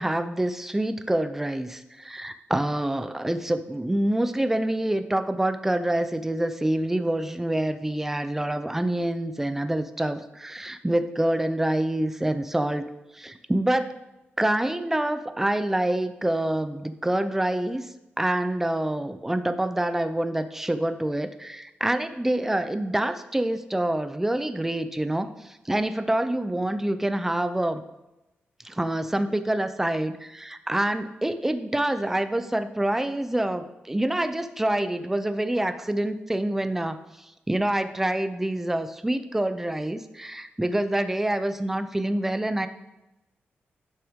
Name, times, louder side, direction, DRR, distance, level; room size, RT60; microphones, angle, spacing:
voice 1, 0.0-12.9 13.1-13.9 14.4-27.8 28.6-42.7, right 1 dB, 10° right, 10 dB, 0.5 m, -26 dB
11.0 x 5.7 x 3.6 m, 0.98 s
wide cardioid pair, 130°, 4 cm